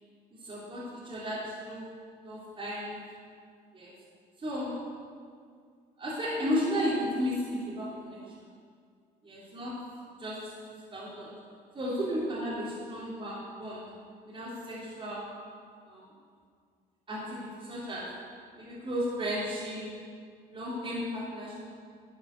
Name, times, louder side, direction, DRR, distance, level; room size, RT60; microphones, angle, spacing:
voice 1, 0.4-1.9 2.2-3.0 3.7-3.9 4.4-4.7 6.0-8.2 9.2-9.7 10.2-10.5 10.9-11.3 11.7-13.9 14.3-15.2 15.8-16.1 17.1-18.1 18.6-19.9 20.5-21.7, equal, 30° right, -9 dB, 3.4 m, -34 dB
11.5 x 8.6 x 6.7 m, 2.1 s
cardioid pair, 110°, 17 cm